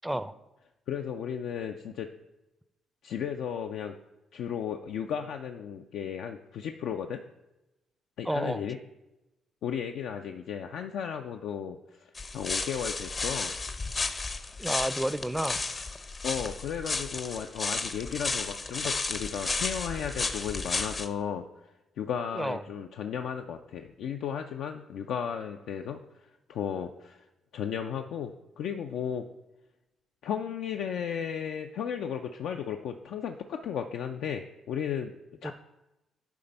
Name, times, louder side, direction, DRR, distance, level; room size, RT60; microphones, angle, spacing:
voice 1, 0.0-0.3 8.2-8.6 14.6-15.6 22.3-22.6 35.4-35.5, right 1 dB, 5° right, 15 dB, 0.4 m, -30 dB
voice 2, 0.9-2.1 3.0-4.0 4.3-7.2 8.2-8.8 9.6-13.6 16.2-21.4 22.0-26.0 26.5-27.3 27.5-29.2 30.2-35.2 35.4-35.5, left 8 dB, 80° left, 5 dB, 0.4 m, -34 dB
sound 1, 12.1-21.1, left 3 dB, 35° left, 0.6 m, -33 dB
9.8 x 3.4 x 5.4 m, 0.98 s
cardioid pair, 80°, 0 cm